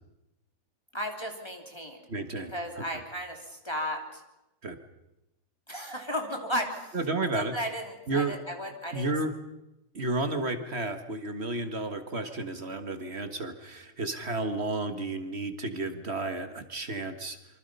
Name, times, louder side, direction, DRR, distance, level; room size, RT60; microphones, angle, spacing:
voice 1, 0.9-2.1 2.5-4.2 5.7-7.0 7.3-9.1, equal, 15° left, 2 dB, 3.0 m, -34 dB
voice 2, 2.1-2.5 2.9-3.0 4.6-4.8 6.9-7.5 8.1-8.4 8.9-9.3 9.9-17.4, right 2 dB, 40° right, 8 dB, 1.8 m, -32 dB
27.0 x 25.0 x 5.5 m, 0.92 s
omnidirectional pair, 1.7 m